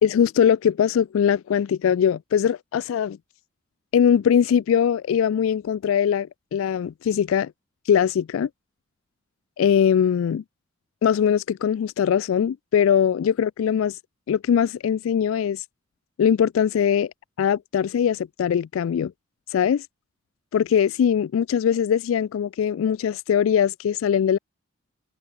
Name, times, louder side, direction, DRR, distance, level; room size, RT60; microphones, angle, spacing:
voice 1, 0.0-3.2 3.9-7.5 7.9-8.5 9.6-10.4 11.0-14.0 14.3-15.6 16.2-17.1 17.4-19.1 19.5-19.8 20.5-24.4, left 8 dB, 85° left, 0.3 m, -21 dB
open air
head